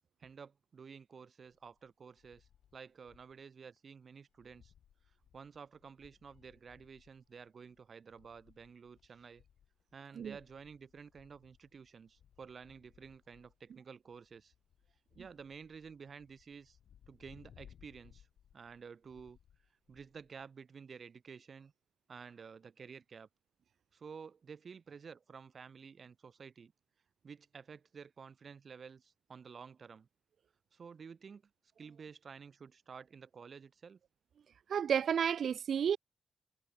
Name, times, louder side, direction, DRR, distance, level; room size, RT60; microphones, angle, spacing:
voice 1, 0.2-4.7 5.3-9.4 9.9-14.5 15.2-16.8 17.1-18.3 18.5-19.4 19.9-21.7 22.1-23.3 23.9-26.7 27.2-30.1 30.7-31.4 31.8-34.0, right 6 dB, 40° right, 5.2 m, -52 dB
sound 1, 1.5-3.4 3.8-3.9 4.2-20.5, left 9 dB, 75° left, 7.7 m, -65 dB
voice 2, 34.7-36.0, right 8 dB, 60° right, 0.4 m, -31 dB
wide cardioid pair, 155°, 0 cm